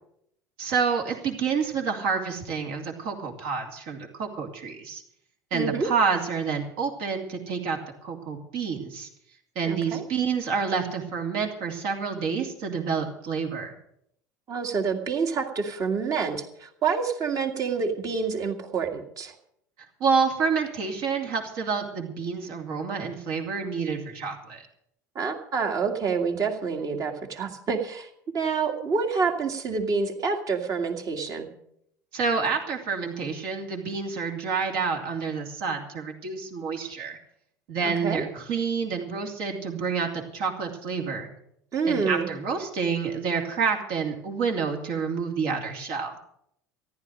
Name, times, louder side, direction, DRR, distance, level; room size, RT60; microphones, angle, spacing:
voice 1, 0.6-5.0 5.5-9.1 9.5-13.7 20.0-24.6 32.1-37.2 37.7-41.3 41.9-46.2, right 5 dB, 55° right, 2 dB, 2.7 m, -28 dB
voice 2, 5.5-5.9 9.7-10.0 14.5-19.3 25.2-31.5 37.8-38.2 41.7-42.3, right 5 dB, 40° right, 4 dB, 2.1 m, -27 dB
14.5 x 11.5 x 6.3 m, 0.73 s
figure-of-eight pair, 70°, 9 cm